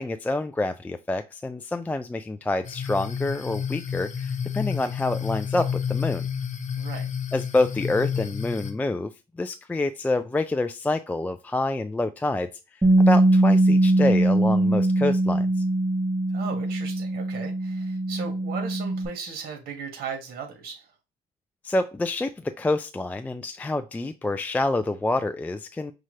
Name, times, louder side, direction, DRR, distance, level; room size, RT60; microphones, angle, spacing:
voice 1, 0.0-6.3 7.3-9.1 9.4-15.5 21.6-25.9, left 2 dB, 10° left, 0.3 m, -27 dB
sound 1, 2.6-8.7, left 7 dB, 45° left, 0.8 m, -30 dB
voice 2, 6.8-7.1 16.3-20.9, right 5 dB, 65° right, 1.9 m, -37 dB
Bass guitar, 12.8-19.1, right 1 dB, 10° right, 0.9 m, -21 dB
5.5 x 2.5 x 3.2 m
cardioid pair, 110°, 17 cm